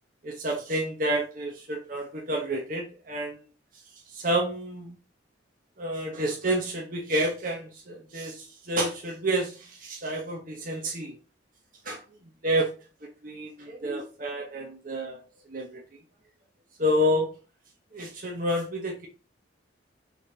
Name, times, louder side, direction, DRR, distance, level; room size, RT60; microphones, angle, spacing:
voice 1, 0.2-3.4 4.1-5.0 5.8-11.1 11.8-12.0 12.4-12.7 13.2-15.2 15.5-15.8 16.8-17.3 17.9-19.1, equal, 45° right, 1 dB, 1.1 m, -29 dB
5.9 x 4.1 x 4.0 m, 0.34 s
head